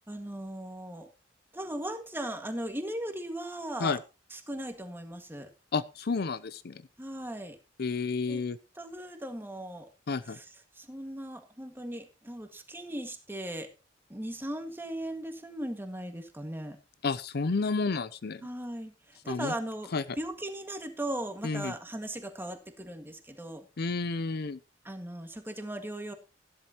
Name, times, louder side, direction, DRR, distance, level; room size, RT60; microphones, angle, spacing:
voice 1, 0.1-1.1 1.5-4.0 4.3-5.5 7.0-7.6 8.3-8.4 8.8-9.9 10.3-10.4 10.8-13.7 14.1-16.8 18.4-23.7 24.8-26.1, right 1 dB, 10° right, 6 dB, 1.8 m, -38 dB
voice 2, 5.7-6.8 7.8-8.6 10.1-10.4 17.0-18.5 19.3-19.5 19.9-20.2 21.4-21.7 23.8-24.6, left 4 dB, 55° left, 15 dB, 0.6 m, -31 dB
14.0 x 12.0 x 2.9 m, 0.29 s
head